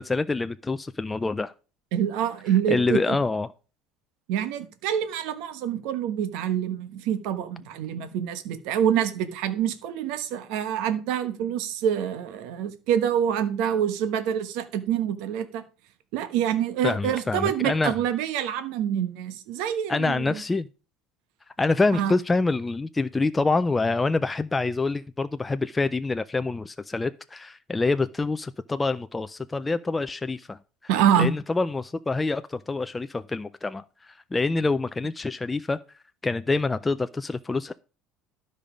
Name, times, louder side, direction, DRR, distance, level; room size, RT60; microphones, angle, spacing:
voice 1, 0.0-1.5 2.7-3.5 16.8-18.0 19.9-20.7 21.6-30.6 31.2-35.8 36.2-37.7, left 3 dB, 10° left, 0.4 m, -26 dB
voice 2, 1.9-3.2 4.3-15.6 16.1-20.4 21.9-22.1 30.9-31.3, right 9 dB, 75° right, 1.1 m, -26 dB
12.0 x 5.3 x 5.1 m
cardioid pair, 140°, 0 cm